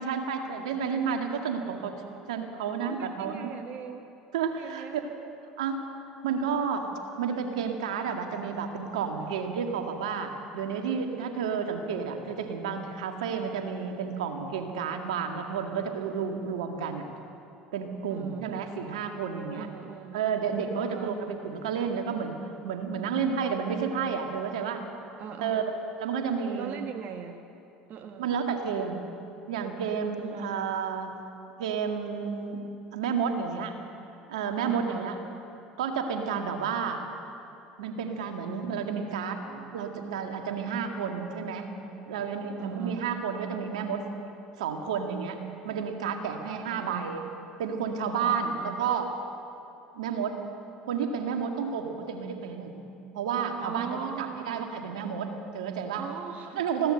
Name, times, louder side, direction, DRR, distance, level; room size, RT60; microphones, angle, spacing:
voice 1, 0.0-2.0 2.3-3.5 4.3-5.0 5.6-5.9 6.2-17.1 17.7-19.7 20.1-24.9 25.4-25.7 26.0-26.8 28.2-29.0 29.5-31.1 31.6-32.6 32.9-33.7 34.3-35.2 35.8-37.0 37.8-41.7 42.1-44.1 44.6-45.4 45.6-47.2 47.6-49.1 49.9-50.4 50.9-52.8 53.1-56.0 56.6-56.9, right 6 dB, 80° right, 4 dB, 2.0 m, -31 dB
voice 2, 2.9-4.1 4.6-5.1 9.2-9.6 18.1-18.5 19.5-20.2 20.8-21.2 25.2-25.7 26.5-27.4 27.9-28.3 30.2-30.5 34.7-35.1 42.6-43.0 46.5-47.2 48.4-48.8 53.6-54.7 55.9-56.6, right 8 dB, 50° right, 6 dB, 1.3 m, -40 dB
20.5 x 16.0 x 7.9 m, 2.8 s
hypercardioid pair, 75°, 4 cm